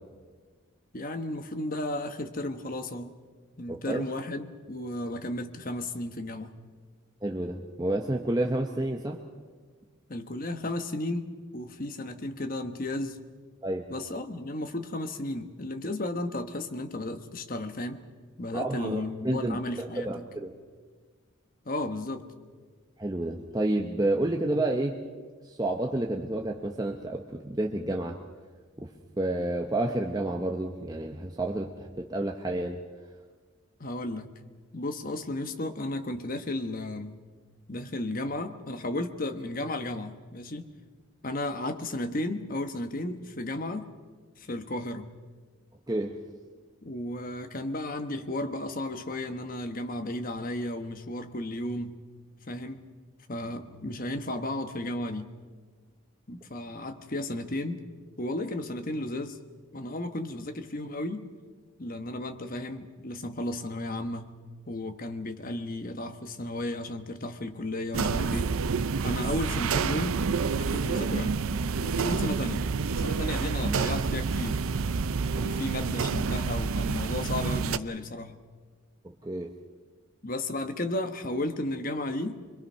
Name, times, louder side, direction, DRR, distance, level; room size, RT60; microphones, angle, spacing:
voice 1, 0.9-3.1 3.6-6.5 10.1-13.2 13.9-18.0 18.4-20.2 21.6-22.3 33.8-34.3 34.7-37.2 37.7-40.7 41.2-43.9 44.4-45.1 46.8-52.0 52.5-52.8 53.3-55.3 56.3-57.8 58.2-59.4 59.7-61.3 61.8-64.3 64.7-68.6 69.0-71.4 71.8-74.6 75.4-78.4 80.2-82.4, left 1 dB, 40° left, 7 dB, 1.2 m, -34 dB
voice 2, 3.7-4.1 7.2-9.2 13.6-13.8 18.5-20.5 23.0-25.0 25.4-28.2 28.8-28.9 29.2-32.8 45.9-46.2 75.4-75.5 79.0-79.6, right 1 dB, 20° right, 1 dB, 0.9 m, -30 dB
sound 1, 67.9-77.8, right 4 dB, 75° right, 0.5 m, -28 dB
25.5 x 22.0 x 5.7 m, 1.5 s
head